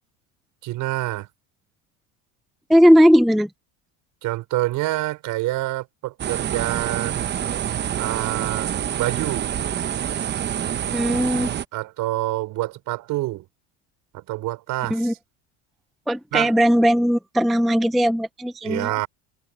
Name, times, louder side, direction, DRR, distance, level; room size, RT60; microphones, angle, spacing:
voice 1, 0.6-1.3 4.2-7.3 8.0-9.5 11.7-13.5 14.1-15.2 16.3-16.5 18.6-19.1, right 18 dB, 60° right, 5.2 m, -27 dB
voice 2, 2.7-3.5 10.9-11.5 14.9-15.1 16.1-19.0, equal, ahead, 0.4 m, -18 dB
sound 1, 6.2-11.6, right 10 dB, 30° right, 0.8 m, -27 dB
supercardioid pair, 125°, 36 cm